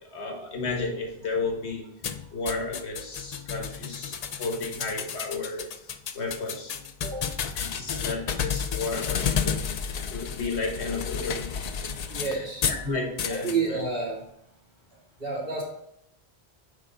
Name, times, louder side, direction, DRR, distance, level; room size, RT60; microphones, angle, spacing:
voice 1, 0.1-1.8 2.3-5.7 6.1-6.7 7.5-9.6 10.1-11.6 12.2-13.8, left 3 dB, 80° left, 1 dB, 1.5 m, -33 dB
sound 1, 2.0-12.8 13.2-13.6, left 7 dB, 55° left, 0.4 m, -31 dB
voice 2, 12.1-12.6 13.3-14.2 15.2-15.6, right 4 dB, 60° right, -3 dB, 2.2 m, -29 dB
9.3 x 3.4 x 3.8 m, 0.76 s
omnidirectional pair, 1.1 m